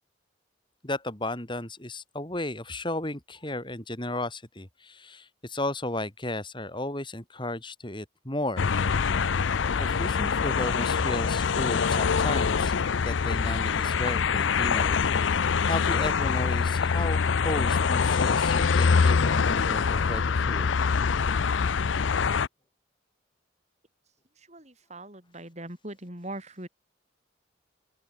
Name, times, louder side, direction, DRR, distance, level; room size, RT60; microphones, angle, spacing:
voice 1, 0.8-8.7 9.8-12.7 13.0-20.7, left 1 dB, 25° left, 4.0 m, -34 dB
sound 1, 8.6-22.5, left 5 dB, 70° left, 0.5 m, -24 dB
voice 2, 24.4-26.7, right 1 dB, 35° right, 7.2 m, -41 dB
open air
head